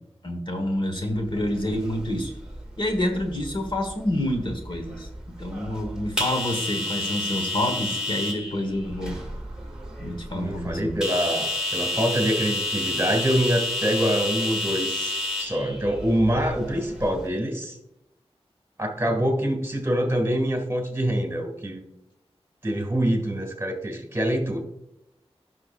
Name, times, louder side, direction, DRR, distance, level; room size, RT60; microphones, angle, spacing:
voice 1, 0.2-2.3 2.8-5.1 5.4-9.2 10.0-11.0, left 1 dB, 50° left, 4 dB, 1.3 m, -28 dB
sound 1, 1.1-17.3, left 2 dB, 5° right, 2.1 m, -31 dB
voice 2, 10.1-15.1 15.4-17.8 18.8-21.8 22.6-24.6, equal, 20° right, 2 dB, 2.0 m, -25 dB
16.5 x 5.8 x 2.5 m, 0.86 s
wide cardioid pair, 95°, 11 cm